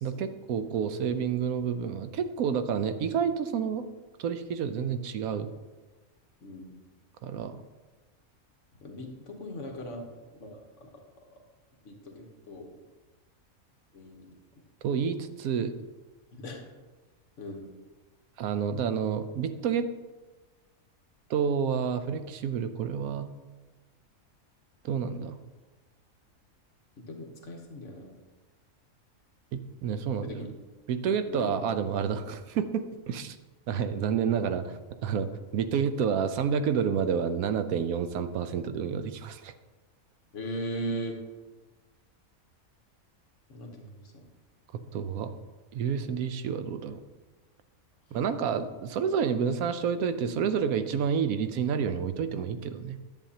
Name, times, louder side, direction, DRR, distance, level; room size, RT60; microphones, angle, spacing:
voice 1, 0.0-3.8 4.2-5.5 7.2-7.6 14.8-15.7 18.4-19.9 21.3-23.3 24.8-25.4 29.5-30.5 30.9-33.4 33.7-39.5 44.9-45.3 45.7-47.0 48.1-53.0, right 7 dB, 80° right, 10 dB, 1.0 m, -29 dB
voice 2, 6.4-6.7 8.8-10.9 11.8-12.7 13.9-14.3 16.3-16.6 17.4-17.7 27.1-28.2 30.3-30.5 31.3-31.5 40.3-41.1 43.5-44.3, equal, 60° left, 2 dB, 1.3 m, -39 dB
10.5 x 7.3 x 2.8 m, 1.3 s
omnidirectional pair, 1.5 m